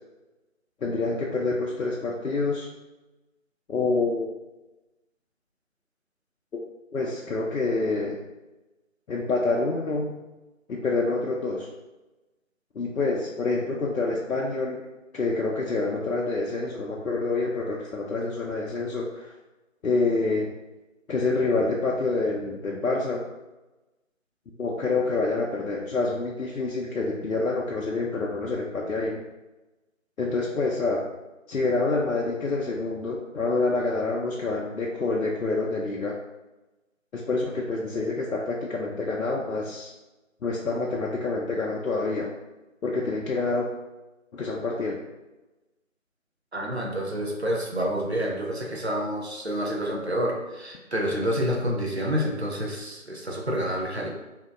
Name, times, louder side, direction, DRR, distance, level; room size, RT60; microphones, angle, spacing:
voice 1, 0.8-2.7 3.7-4.3 6.9-8.2 9.1-10.1 10.7-11.7 12.8-14.8 15.1-19.3 19.8-20.5 21.1-23.2 24.6-29.2 30.2-31.0 31.5-36.1 37.1-39.9 40.4-42.3 42.8-43.7 44.3-45.0, left 3 dB, 80° left, -3 dB, 0.6 m, -27 dB
voice 2, 46.5-54.1, equal, 55° right, -1 dB, 0.5 m, -28 dB
2.7 x 2.2 x 3.5 m, 1.1 s
figure-of-eight pair, 180°, 40 cm